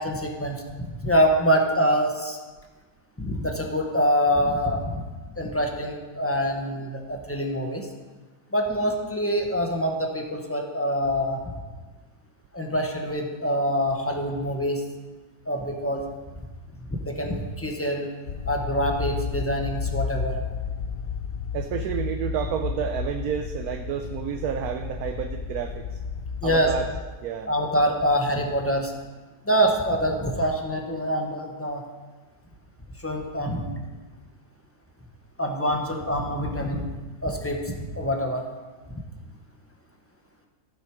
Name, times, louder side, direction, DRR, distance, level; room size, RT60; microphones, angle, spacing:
voice 1, 0.0-2.4 3.2-5.0 5.4-7.9 8.5-11.4 12.5-14.8 15.5-16.0 17.0-18.1 18.5-20.4 26.4-26.7 27.5-28.9 29.4-31.8 33.0-33.7 35.4-36.8 37.2-38.4, equal, 10° left, 1 dB, 1.1 m, -25 dB
sound 1, 18.3-27.0, left 5 dB, 85° left, 0.6 m, -32 dB
voice 2, 21.5-26.0 26.4-26.9 27.2-27.5, right 8 dB, 70° right, 6 dB, 1.1 m, -30 dB
14.5 x 7.5 x 4.9 m, 1.3 s
omnidirectional pair, 1.8 m